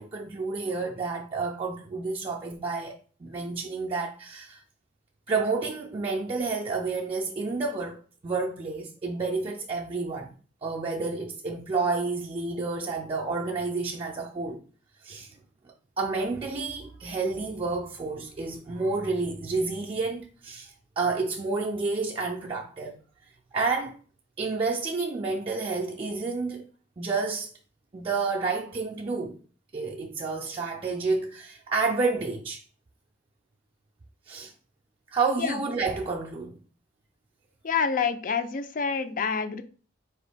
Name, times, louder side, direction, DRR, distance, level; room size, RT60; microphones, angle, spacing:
voice 1, 0.0-3.0 3.2-4.6 5.3-10.3 10.6-14.6 15.0-15.3 16.0-23.0 23.5-24.0 24.4-26.7 27.0-27.5 27.9-29.4 29.7-32.6 34.3-34.5 35.1-36.6, right 3 dB, 25° right, 0.4 m, -30 dB
voice 2, 37.6-39.6, left 6 dB, 40° left, 0.4 m, -27 dB
4.5 x 3.0 x 3.3 m
head